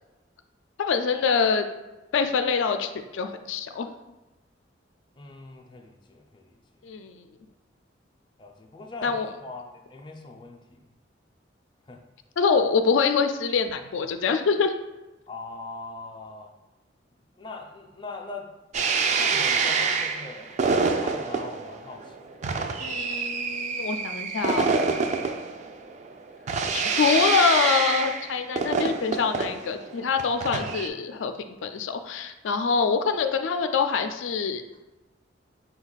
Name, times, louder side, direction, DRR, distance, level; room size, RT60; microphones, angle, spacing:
voice 1, 0.8-1.6 2.1-3.9 6.8-7.3 9.0-9.3 12.4-14.7 22.8-24.7 26.7-31.3 31.6-34.6, left 5 dB, 90° left, 7 dB, 0.4 m, -25 dB
voice 2, 5.1-6.6 8.4-10.8 11.9-12.0 15.3-16.5 17.4-18.5 19.2-22.4, left 3 dB, 25° left, 2 dB, 0.4 m, -41 dB
sound 1, 18.7-30.9, right 5 dB, 40° right, 0.3 m, -27 dB
5.1 x 2.3 x 4.0 m, 1.1 s
head